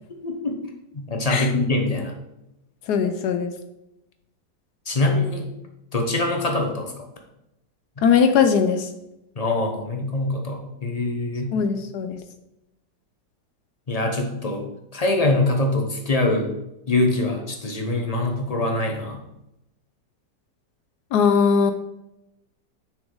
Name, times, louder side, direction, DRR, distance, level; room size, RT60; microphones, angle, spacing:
voice 1, 0.2-0.6 0.9-2.2 4.9-5.5 5.9-6.9 9.4-11.5 13.9-14.7 14.9-16.5 16.9-19.2, left 2 dB, 40° left, 2 dB, 0.5 m, -23 dB
voice 2, 2.9-3.5 8.0-8.9 11.5-12.2 21.1-21.7, left 6 dB, 75° left, 8 dB, 1.1 m, -19 dB
6.4 x 6.1 x 3.7 m, 0.87 s
omnidirectional pair, 1.9 m